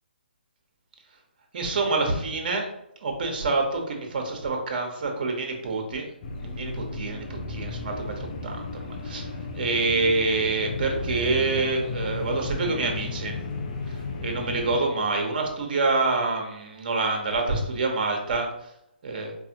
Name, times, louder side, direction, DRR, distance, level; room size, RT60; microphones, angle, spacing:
voice 1, 1.5-2.7 3.0-6.1 6.4-13.4 13.9-18.5 19.0-19.3, right 3 dB, 55° right, 2 dB, 1.0 m, -27 dB
sound 1, 6.2-14.8, left 3 dB, 45° left, 0.7 m, -34 dB
4.6 x 2.5 x 2.8 m, 0.81 s
hypercardioid pair, 145°, 6 cm